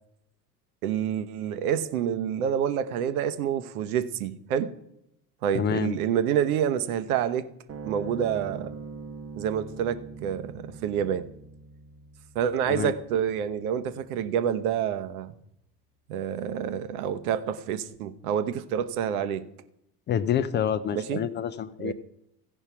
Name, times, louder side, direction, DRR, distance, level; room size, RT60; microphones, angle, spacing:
voice 1, 0.8-4.7 5.4-7.5 7.8-8.7 9.4-11.3 12.3-15.3 16.1-19.4 20.9-21.2 21.8-21.9, right 9 dB, 65° right, 1.0 m, -28 dB
voice 2, 5.5-6.0 12.7-12.9 20.1-21.9, left 8 dB, 25° left, 0.5 m, -27 dB
sound 1, 7.7-14.3, right 4 dB, 30° right, 0.9 m, -43 dB
15.5 x 5.4 x 5.9 m
figure-of-eight pair, 75°, 47 cm